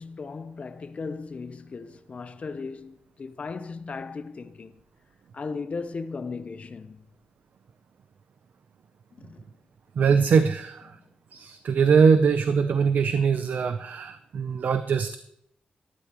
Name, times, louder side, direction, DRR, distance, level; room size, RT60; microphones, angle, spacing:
voice 1, 0.0-4.8 5.3-7.0 9.2-9.5, left 4 dB, 45° left, 0.7 m, -37 dB
voice 2, 10.0-11.0 11.3-15.2, right 6 dB, 80° right, 0.6 m, -22 dB
13.0 x 12.5 x 3.0 m
wide cardioid pair, 135°, 3 cm